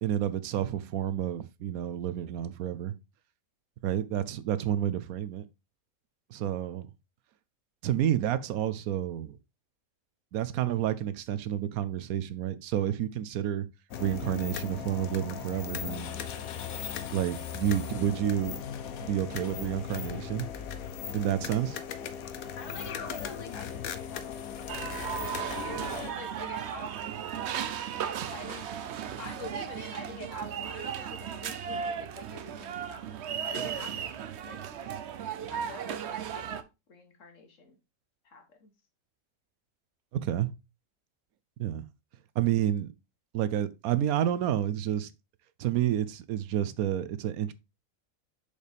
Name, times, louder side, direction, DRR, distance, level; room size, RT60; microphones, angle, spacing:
voice 1, 0.0-2.9 3.8-5.4 6.3-6.9 7.8-9.4 10.3-13.7 14.0-16.2 17.1-18.5 19.0-20.5 21.1-21.8 40.1-40.5 41.6-41.8 42.4-42.9 43.3-45.1 45.6-47.5, right 10 dB, 85° right, 1.1 m, -29 dB
sound 1, 13.9-26.1, left 8 dB, 85° left, 1.2 m, -38 dB
voice 2, 22.5-28.7 29.0-34.2 34.4-34.6 35.5-36.5 36.9-37.8 38.3-38.7, left 4 dB, 60° left, 1.7 m, -46 dB
sound 2, 24.7-36.6, right 8 dB, 60° right, 0.8 m, -36 dB
6.5 x 5.1 x 3.4 m
omnidirectional pair, 1.5 m